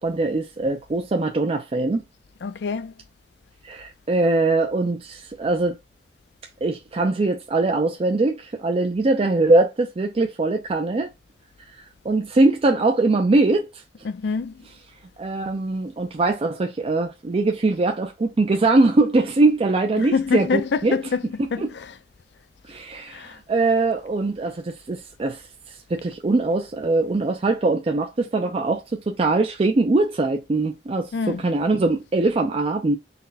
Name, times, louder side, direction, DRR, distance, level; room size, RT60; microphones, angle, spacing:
voice 1, 0.0-2.0 3.6-5.8 6.6-11.1 12.0-13.7 15.2-21.0 21.4-21.7 22.7-25.4 25.9-33.0, right 2 dB, 35° right, 0.4 m, -22 dB
voice 2, 2.4-2.9 14.1-14.5 20.0-21.2 21.5-21.9 23.1-23.4 31.1-31.4, left 5 dB, 70° left, 0.4 m, -25 dB
4.1 x 2.1 x 3.9 m
head